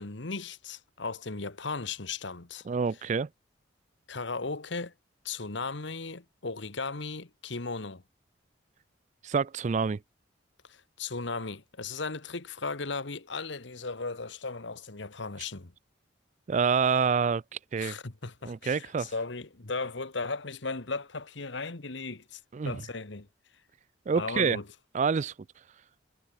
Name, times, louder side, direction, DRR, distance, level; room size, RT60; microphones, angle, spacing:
voice 1, 0.0-2.7 4.1-4.9 5.2-8.0 10.6-15.7 17.8-22.4 22.6-23.3 24.1-24.7, left 3 dB, 65° left, 1.5 m, -36 dB
voice 2, 2.7-3.3 9.2-10.0 16.5-17.4 17.7-18.0 18.4-19.1 22.5-22.8 24.1-24.6 24.9-25.3, right 5 dB, 40° right, 0.4 m, -27 dB
head